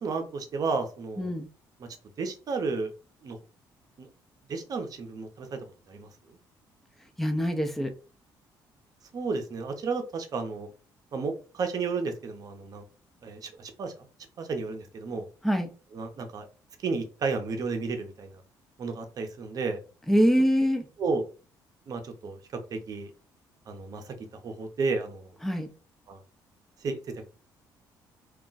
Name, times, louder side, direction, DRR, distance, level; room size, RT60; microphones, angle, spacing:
voice 1, 0.0-1.3 1.8-1.9 2.2-2.9 3.2-3.4 4.0-4.1 4.5-5.6 5.9-6.1 9.1-10.7 11.1-12.8 13.2-13.9 14.4-15.3 15.9-16.4 16.8-18.4 18.8-19.8 21.0-21.2 21.9-22.4 22.7-23.1 23.7-24.1 24.4-25.3 26.1-26.2 26.8-27.3, right 4 dB, 50° right, 6 dB, 0.7 m, -32 dB
voice 2, 7.2-7.9 15.4-15.7 20.1-20.9 25.4-25.7, equal, 5° left, 5 dB, 0.5 m, -24 dB
2.3 x 2.1 x 3.9 m, 0.36 s
cardioid pair, 100°, 8 cm